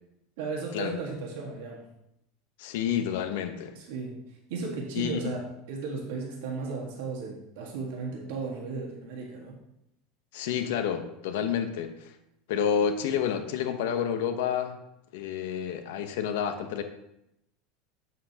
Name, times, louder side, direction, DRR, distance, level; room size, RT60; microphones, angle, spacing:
voice 1, 0.4-1.8 3.7-4.2 4.5-9.6, right 4 dB, 70° right, -1 dB, 1.6 m, -35 dB
voice 2, 2.6-3.8 4.9-5.2 10.3-12.2 12.5-14.8 15.1-16.8, left 8 dB, 75° left, 7 dB, 0.9 m, -29 dB
8.3 x 7.6 x 2.9 m, 0.83 s
supercardioid pair, 160°, 0 cm